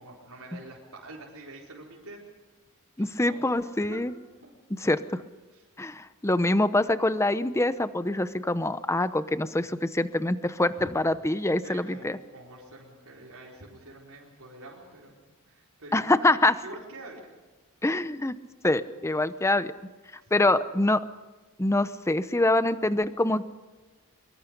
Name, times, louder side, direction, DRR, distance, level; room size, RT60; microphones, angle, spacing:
voice 1, 0.0-2.2 3.0-3.4 3.8-4.0 4.4-4.5 5.5-5.6 10.7-10.9 11.6-15.1 15.4-16.3 16.6-17.3 20.2-20.3, right 2 dB, 80° right, -4 dB, 4.4 m, -46 dB
voice 2, 3.0-4.1 4.8-5.2 5.8-12.2 15.9-16.5 17.8-18.4 18.6-19.7 20.3-21.0 21.6-23.5, left 2 dB, 15° left, 13 dB, 0.7 m, -25 dB
23.5 x 23.0 x 5.3 m, 1.2 s
head